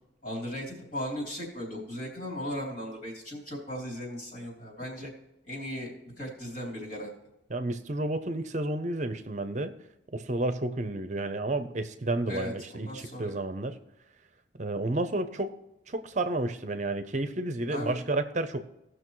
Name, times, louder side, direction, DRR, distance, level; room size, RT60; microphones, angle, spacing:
voice 1, 0.2-5.1 5.4-7.1 12.3-13.4 17.7-18.0, equal, 45° left, -2 dB, 3.3 m, -37 dB
voice 2, 7.5-9.7 10.1-13.8 14.6-15.5 15.9-18.6, right 2 dB, 40° right, 10 dB, 0.6 m, -31 dB
18.0 x 6.2 x 3.1 m, 0.89 s
head